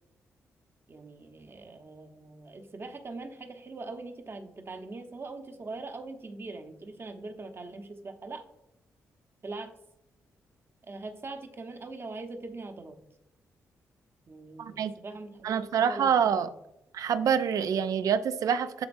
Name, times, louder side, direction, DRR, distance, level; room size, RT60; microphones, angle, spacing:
voice 1, 0.9-8.4 9.4-9.7 10.8-13.0 14.3-16.4, right 3 dB, 40° right, 6 dB, 0.9 m, -42 dB
voice 2, 14.6-14.9 15.4-16.5 16.9-18.8, right 7 dB, 70° right, 12 dB, 0.5 m, -26 dB
10.0 x 3.9 x 2.6 m, 0.86 s
supercardioid pair, 55°, 6 cm